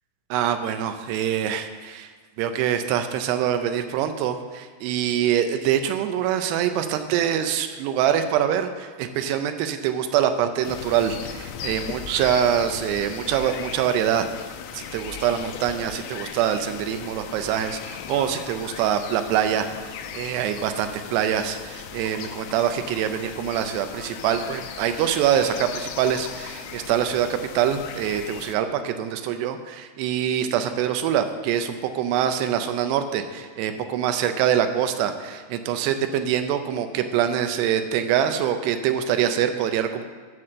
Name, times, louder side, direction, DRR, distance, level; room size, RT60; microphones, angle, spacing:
voice 1, 0.3-2.1 2.4-14.3 14.7-40.0, right 9 dB, 85° right, 8 dB, 2.7 m, -24 dB
sound 1, 10.6-28.6, left 8 dB, 85° left, 2.7 m, -37 dB
11.0 x 4.2 x 7.5 m, 1.5 s
omnidirectional pair, 4.8 m